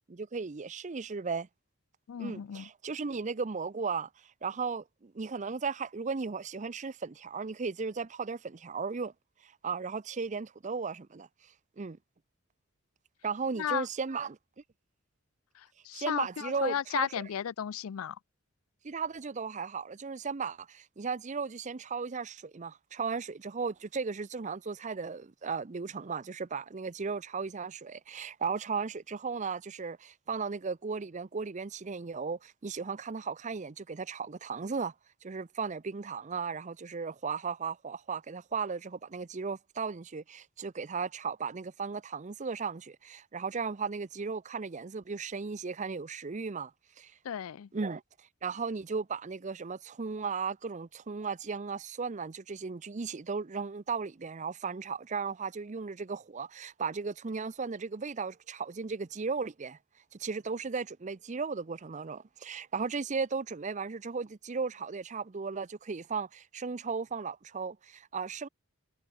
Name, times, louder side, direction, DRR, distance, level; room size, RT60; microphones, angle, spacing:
voice 1, 0.1-1.5 2.2-4.1 4.4-9.1 9.4-11.3 11.8-12.0 13.2-14.4 15.9-17.2 18.8-34.9 35.2-46.7 47.0-47.1 47.7-48.0 48.4-59.8 60.2-68.5, right 5 dB, 35° right, 0.6 m, -36 dB
voice 2, 2.1-2.7 13.6-13.9 15.8-18.2 47.2-47.7, left 9 dB, 85° left, 0.4 m, -34 dB
head